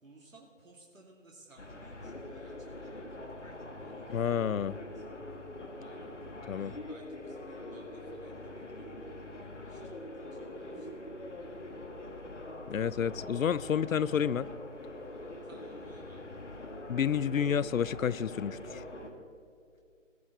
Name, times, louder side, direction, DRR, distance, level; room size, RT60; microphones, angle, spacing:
voice 1, 0.0-3.5 3.8-5.0 5.8-6.1 6.5-10.9 15.4-16.5, right 2 dB, 85° right, -1 dB, 2.2 m, -58 dB
sound 1, 1.6-19.1, left 1 dB, 65° left, 1.6 m, -44 dB
voice 2, 4.1-4.8 6.5-6.7 12.7-14.5 16.9-18.8, left 8 dB, 85° left, 20 dB, 0.5 m, -30 dB
19.5 x 6.8 x 4.1 m, 2.3 s
figure-of-eight pair, 180°, 39 cm